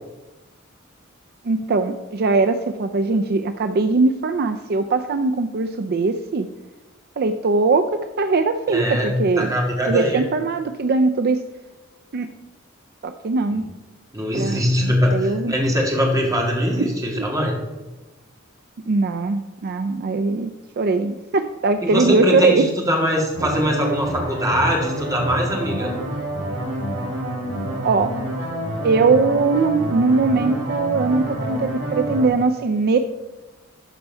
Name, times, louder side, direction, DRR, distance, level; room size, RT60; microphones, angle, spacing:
voice 1, 1.4-6.5 7.2-9.5 9.9-11.4 12.1-12.3 13.0-13.7 14.3-15.5 16.8-17.3 18.9-22.7 27.8-28.1 28.8-33.0, right 3 dB, 50° right, 8 dB, 0.4 m, -21 dB
voice 2, 8.7-10.2 13.5-13.6 14.1-17.5 21.8-25.9, equal, 15° right, 0 dB, 1.9 m, -22 dB
sound 1, 23.3-32.3, right 1 dB, 80° right, 3.7 m, -28 dB
12.0 x 4.5 x 5.5 m, 1.1 s
head